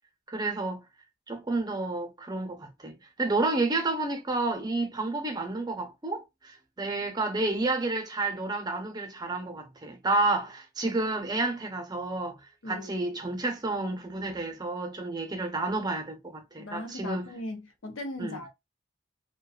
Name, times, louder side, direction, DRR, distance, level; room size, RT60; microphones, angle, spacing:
voice 1, 0.3-0.8 1.3-12.4 12.7-17.3 18.2-18.4, right 2 dB, 20° right, 0.6 m, -30 dB
voice 2, 16.6-18.5, left 1 dB, 85° left, 0.7 m, -38 dB
2.5 x 2.2 x 2.3 m
head